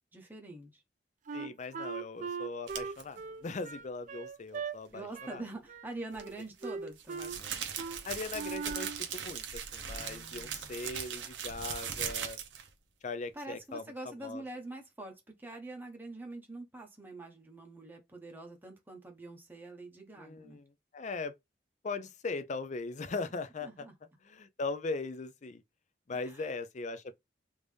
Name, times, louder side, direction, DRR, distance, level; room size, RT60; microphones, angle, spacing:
voice 1, 0.1-0.8 4.9-7.9 10.0-10.7 13.3-20.6 23.6-23.9 26.1-26.5, right 2 dB, 10° right, 0.7 m, -45 dB
voice 2, 1.3-5.4 8.0-12.4 13.0-13.8 14.2-14.4 20.2-21.3 21.8-23.9 24.2-25.6 26.1-27.1, left 3 dB, 40° left, 0.5 m, -39 dB
Wind instrument woodwind instrument, 1.3-4.8 5.1-5.4 5.7-6.4 6.6-7.4 7.8-8.0 8.3-9.0, right 5 dB, 45° right, 0.3 m, -40 dB
sound 1, 2.7-3.0 6.1-12.7, right 8 dB, 90° right, 0.8 m, -39 dB
3.5 x 2.6 x 3.2 m
head